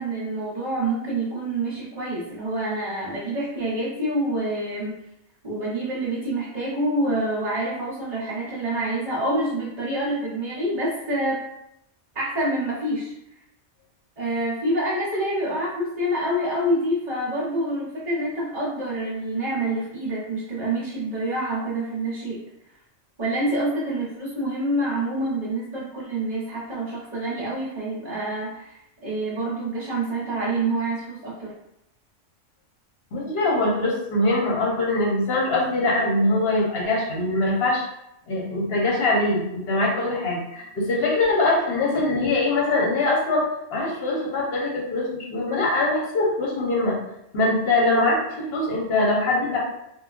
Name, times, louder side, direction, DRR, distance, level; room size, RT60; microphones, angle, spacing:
voice 1, 0.0-4.9 5.4-11.4 12.1-13.1 14.2-22.4 23.2-31.5, right 1 dB, 35° right, -11 dB, 1.1 m, -27 dB
voice 2, 33.1-37.8 38.3-43.4 43.7-47.0 47.3-49.6, left 2 dB, 55° left, -3 dB, 1.1 m, -22 dB
3.6 x 2.5 x 2.4 m, 0.81 s
omnidirectional pair, 1.3 m